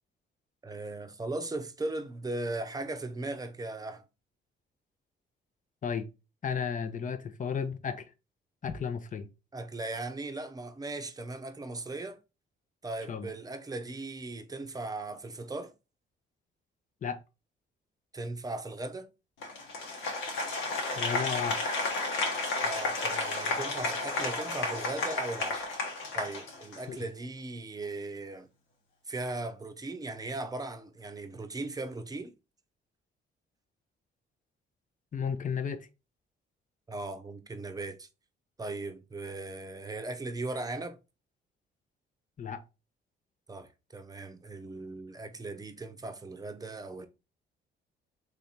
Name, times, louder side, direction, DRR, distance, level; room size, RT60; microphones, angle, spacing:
voice 1, 0.6-4.0 9.5-12.2 12.8-15.7 18.1-19.1 22.6-25.7 26.1-28.5 29.1-32.3 36.9-38.1 38.6-41.0 43.5-47.1, right 2 dB, 20° right, 0.7 m, -38 dB
voice 2, 6.4-8.0 8.6-9.3 13.1-13.3 17.0-17.2 21.0-21.7 26.9-27.0 35.1-35.9 42.4-42.6, left 6 dB, 40° left, 0.8 m, -33 dB
Applause, 19.4-27.0, left 3 dB, 80° left, 1.4 m, -32 dB
3.5 x 3.4 x 4.0 m
cardioid pair, 90°, 20 cm